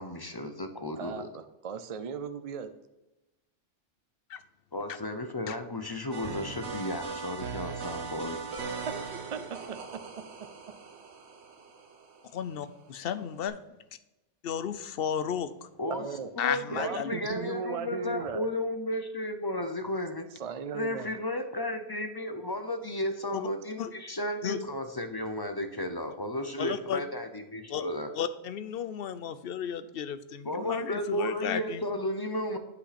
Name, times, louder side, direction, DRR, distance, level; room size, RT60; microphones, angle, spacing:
voice 1, 0.0-1.3 4.7-8.4 15.8-16.1 16.3-20.3 20.7-28.1 30.5-32.6, left 1 dB, 25° left, 7 dB, 0.6 m, -34 dB
voice 2, 1.0-2.7 8.9-9.0 9.3-9.8 15.9-16.3 16.7-18.5 20.4-21.1, right 5 dB, 45° right, 9 dB, 0.5 m, -36 dB
sound 1, 6.1-12.6 13.5-13.6, right 5 dB, 65° right, 1.2 m, -39 dB
voice 3, 12.3-13.6 14.4-15.7 16.4-17.1 23.3-23.5 23.8-23.9 24.4-24.6 26.6-27.0 27.7-27.9 28.1-31.8, left 8 dB, 60° left, 13 dB, 0.7 m, -33 dB
8.2 x 5.7 x 4.2 m, 0.97 s
omnidirectional pair, 1.2 m